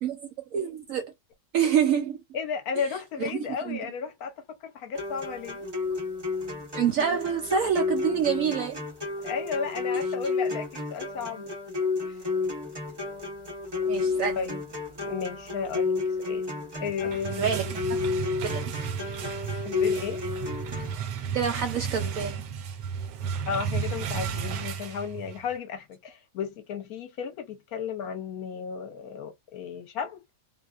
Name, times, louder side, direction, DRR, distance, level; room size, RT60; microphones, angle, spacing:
voice 1, 0.0-1.1 1.5-2.2 3.2-3.8 6.7-8.8 13.9-14.4 17.4-18.0 18.4-18.9 21.3-22.4, right 7 dB, 65° right, 0.8 m, -27 dB
voice 2, 2.3-5.7 9.2-11.5 12.0-12.2 14.4-14.6 15.0-16.5 16.8-17.6 19.6-20.2 23.5-30.2, left 6 dB, 65° left, 1.0 m, -34 dB
sound 1, 4.9-20.9, left 4 dB, 35° right, 0.3 m, -31 dB
sound 2, 16.9-25.5, right 7 dB, 85° right, 1.2 m, -33 dB
2.8 x 2.0 x 2.3 m
omnidirectional pair, 1.8 m